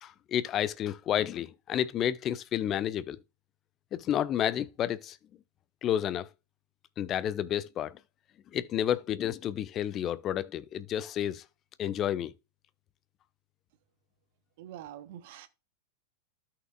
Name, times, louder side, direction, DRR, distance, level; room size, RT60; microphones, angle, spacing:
voice 1, 0.0-3.2 3.9-5.2 5.8-6.3 7.0-8.0 8.5-11.4 11.8-12.3, left 10 dB, 30° left, 0.6 m, -30 dB
voice 2, 14.6-15.5, right 11 dB, 50° right, 0.9 m, -45 dB
13.0 x 5.9 x 2.4 m
figure-of-eight pair, 90°, 0 cm